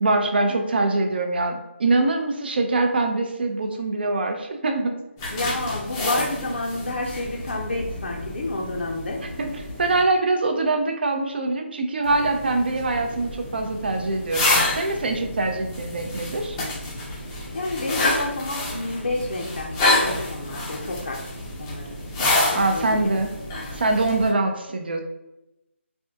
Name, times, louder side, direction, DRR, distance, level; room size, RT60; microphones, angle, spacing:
voice 1, 0.0-5.0 9.4-14.5 14.8-16.6 22.5-23.3 23.7-25.0, right 2 dB, 50° right, 4 dB, 0.5 m, -23 dB
sound 1, 5.2-10.0 12.0-24.3, left 2 dB, 15° left, 0.5 m, -28 dB
voice 2, 5.3-9.2 17.5-21.2 21.6-22.0 22.3-23.1 24.3-24.5, left 2 dB, 60° left, 0 dB, 0.6 m, -30 dB
3.4 x 2.2 x 2.7 m, 0.93 s
figure-of-eight pair, 165°, 7 cm